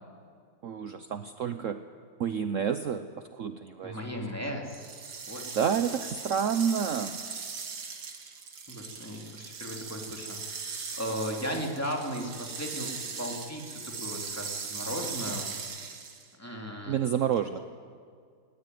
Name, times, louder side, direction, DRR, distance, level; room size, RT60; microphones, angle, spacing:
voice 1, 0.6-1.9 2.2-4.0 5.5-7.2 16.9-17.6, right 8 dB, 55° right, 9 dB, 1.1 m, -29 dB
voice 2, 3.8-4.9 5.2-5.5 8.7-12.9 13.2-15.5 16.4-17.0, equal, 10° left, 0 dB, 2.9 m, -36 dB
sound 1, 4.7-16.3, right 5 dB, 80° right, 2.3 m, -39 dB
20.5 x 20.0 x 9.4 m, 2.1 s
omnidirectional pair, 1.8 m